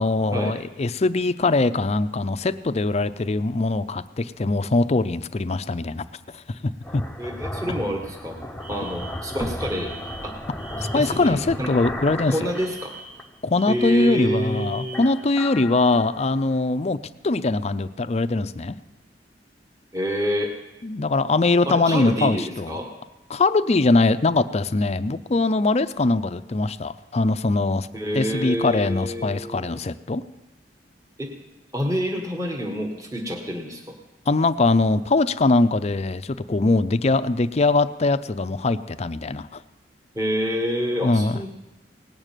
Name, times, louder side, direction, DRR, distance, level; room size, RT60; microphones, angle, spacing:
voice 1, 0.0-6.1 6.3-6.6 6.9-7.0 10.9-12.5 13.4-17.0 17.2-18.8 20.8-22.8 23.3-27.9 28.1-30.2 34.3-39.6 41.0-41.4, left 3 dB, 40° left, 12 dB, 0.5 m, -22 dB
sound 1, 6.5-13.3 13.7-14.5 14.9-16.6, left 1 dB, 5° left, 0.8 m, -35 dB
voice 2, 7.2-8.4 8.7-9.9 10.2-10.4 10.9-11.7 12.3-13.0 13.7-15.0 19.9-20.5 21.7-22.9 27.9-29.8 31.2-31.3 31.7-33.9 40.2-41.5, equal, 20° right, 1 dB, 1.6 m, -27 dB
Alarm, 8.6-11.3 12.5-15.3, right 3 dB, 50° right, 3.0 m, -43 dB
18.0 x 6.6 x 9.1 m, 1.0 s
head